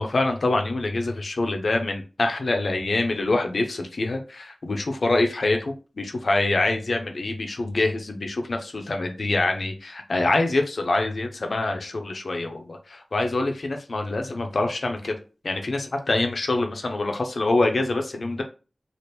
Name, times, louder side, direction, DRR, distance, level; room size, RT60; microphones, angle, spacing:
voice 1, 0.0-15.1 15.4-18.4, left 2 dB, 70° left, 4 dB, 0.6 m, -25 dB
2.9 x 2.5 x 3.3 m, 0.34 s
wide cardioid pair, 75°, 0 cm